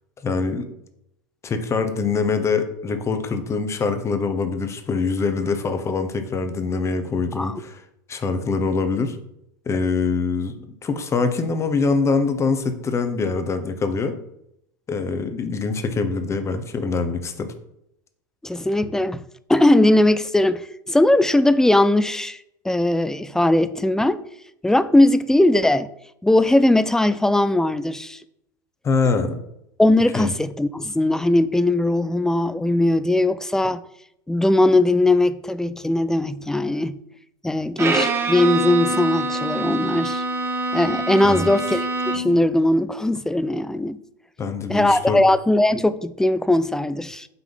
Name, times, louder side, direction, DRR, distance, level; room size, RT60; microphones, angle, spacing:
voice 1, 0.2-0.7 1.4-7.8 8.1-9.2 9.7-14.1 14.9-17.5 28.8-29.4 30.1-30.3 41.2-41.5 44.4-45.2, left 4 dB, 25° left, 1.0 m, -24 dB
voice 2, 18.4-19.2 19.5-22.4 22.6-24.2 24.6-25.9 26.2-28.2 29.8-33.8 34.3-37.0 37.4-40.2 40.7-44.0 44.7-47.3, left 1 dB, 5° left, 0.4 m, -19 dB
Bowed string instrument, 37.8-42.5, right 2 dB, 20° right, 1.0 m, -25 dB
5.9 x 3.7 x 5.3 m
hypercardioid pair, 90°, 11 cm